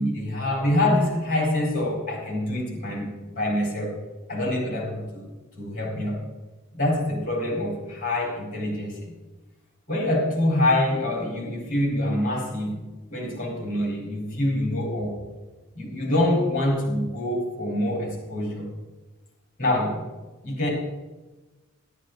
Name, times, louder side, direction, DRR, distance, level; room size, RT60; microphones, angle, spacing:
voice 1, 0.0-4.0 4.3-5.3 5.6-6.2 6.7-9.1 9.9-12.8 13.1-15.1 15.8-18.7 19.6-20.0 20.4-20.7, left 1 dB, 40° left, -1 dB, 4.1 m, -25 dB
12.5 x 11.5 x 3.9 m, 1.2 s
head